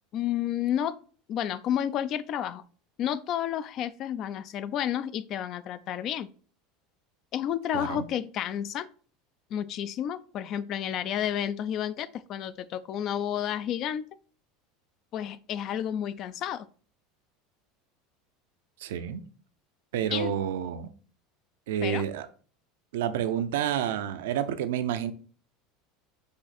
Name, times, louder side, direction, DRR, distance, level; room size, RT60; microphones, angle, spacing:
voice 1, 0.1-1.0 1.3-2.6 3.0-6.3 7.3-8.9 9.5-14.1 15.1-16.7 20.1-20.4 21.8-22.1, left 10 dB, 50° left, 0.3 m, -31 dB
voice 2, 7.7-8.1 18.8-19.2 19.9-20.9 21.7-22.3 22.9-25.1, right 9 dB, 80° right, 0.5 m, -29 dB
5.0 x 2.5 x 4.1 m
hypercardioid pair, 100°, 0 cm